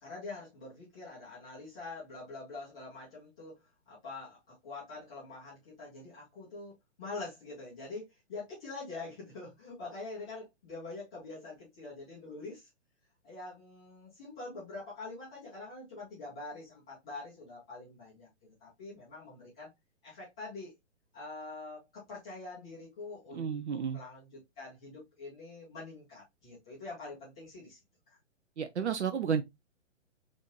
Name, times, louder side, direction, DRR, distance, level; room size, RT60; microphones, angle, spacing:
voice 1, 0.0-3.6 3.9-6.7 7.0-12.7 13.2-19.7 20.0-20.7 21.1-27.8 28.1-28.2, left 3 dB, 5° left, 0.4 m, -45 dB
voice 2, 23.3-24.0 28.6-29.4, right 7 dB, 65° right, 0.5 m, -32 dB
4.0 x 2.6 x 2.9 m
figure-of-eight pair, 125°, 37 cm